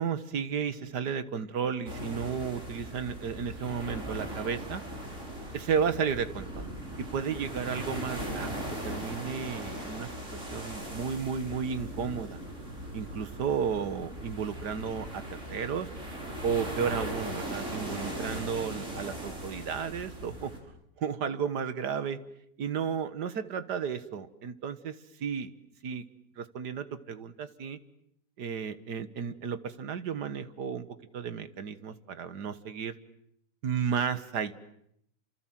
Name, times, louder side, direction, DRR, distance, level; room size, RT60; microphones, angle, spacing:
voice 1, 0.0-4.8 5.5-6.7 7.0-10.1 10.5-12.4 12.9-15.2 15.5-15.9 16.4-20.5 21.0-22.2 22.6-25.0 25.2-25.5 25.8-26.0 26.4-27.8 28.4-30.9 31.1-32.9 33.6-34.5, right 7 dB, 70° right, 12 dB, 2.0 m, -33 dB
sound 1, 1.8-20.6, equal, 45° right, 6.0 m, -39 dB
29.0 x 27.5 x 7.6 m, 0.74 s
omnidirectional pair, 1.9 m